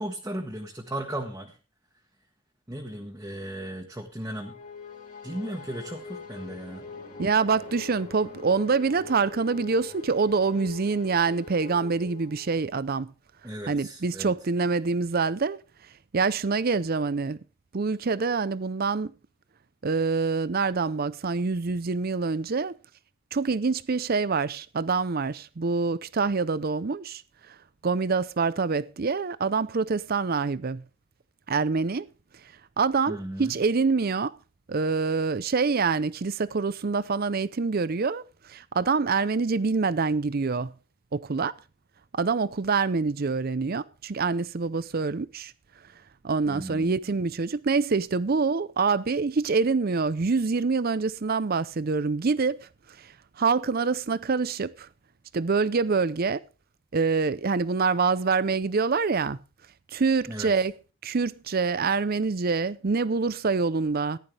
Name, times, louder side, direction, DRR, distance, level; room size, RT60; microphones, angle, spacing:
voice 1, 0.0-1.5 2.7-4.6 5.2-6.8 13.4-14.3 33.1-33.6 46.5-46.9 60.3-60.5, right 1 dB, 15° right, 1.3 m, -36 dB
sound 1, 4.3-12.8, left 4 dB, 40° left, 3.0 m, -43 dB
voice 2, 7.2-13.1 13.7-15.6 16.1-17.4 17.7-19.1 19.8-22.7 23.3-27.2 27.8-30.8 31.5-32.1 32.8-34.3 34.7-38.2 38.5-40.7 41.1-41.5 42.1-45.5 46.2-52.7 53.0-53.1 53.4-54.9 55.3-56.4 56.9-59.4 59.9-60.7 61.0-64.2, right 4 dB, 45° right, 0.5 m, -26 dB
14.5 x 11.0 x 3.3 m
head